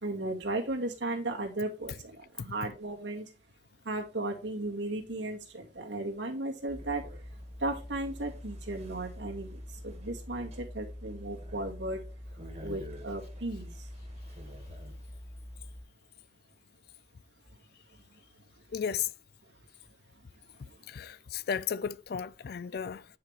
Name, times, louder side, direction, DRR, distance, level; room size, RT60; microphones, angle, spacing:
voice 1, 0.0-3.3 3.8-7.0 7.6-12.0 12.6-13.9 20.6-20.9, right 2 dB, 75° right, 2.1 m, -35 dB
sound 1, 6.7-15.8, equal, 35° right, 2.2 m, -44 dB
voice 2, 18.7-19.1 20.9-23.1, left 7 dB, 55° left, 0.3 m, -34 dB
9.6 x 5.7 x 3.3 m
head